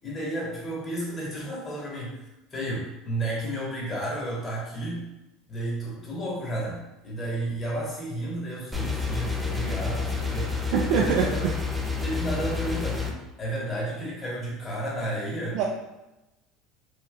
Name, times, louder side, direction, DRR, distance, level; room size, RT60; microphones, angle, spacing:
voice 1, 0.0-5.1 5.5-11.4 12.0-13.0 13.4-15.6, right 1 dB, 30° left, -5 dB, 1.3 m, -32 dB
sound 1, 8.7-13.1, left 4 dB, 10° right, 0.5 m, -29 dB
voice 2, 10.7-11.5 15.5-15.6, right 6 dB, 65° right, -1 dB, 0.4 m, -24 dB
3.2 x 2.8 x 2.3 m, 1.0 s
supercardioid pair, 95°, 0 cm